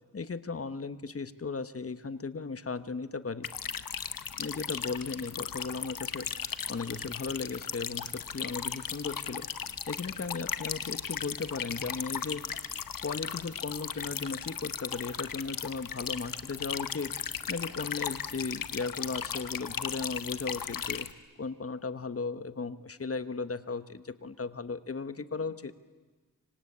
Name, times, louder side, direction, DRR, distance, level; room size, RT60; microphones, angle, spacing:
voice 1, 0.1-3.5 4.4-12.4 13.0-21.1 21.4-25.7, left 4 dB, 45° left, 12 dB, 1.2 m, -36 dB
sound 1, 3.4-21.1, left 7 dB, 80° left, 1.2 m, -37 dB
26.5 x 25.0 x 8.7 m, 1.3 s
wide cardioid pair, 105°, 33 cm